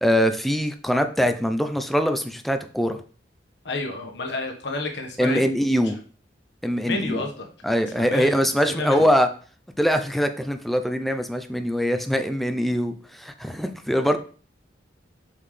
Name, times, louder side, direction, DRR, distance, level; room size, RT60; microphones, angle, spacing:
voice 1, 0.0-3.0 5.2-6.0 6.6-7.2 7.6-9.3 9.8-14.2, equal, ahead, 6 dB, 0.5 m, -23 dB
voice 2, 3.6-5.4 6.8-7.5 7.9-9.1, left 2 dB, 65° left, 2 dB, 1.3 m, -30 dB
5.7 x 5.5 x 3.3 m, 0.40 s
head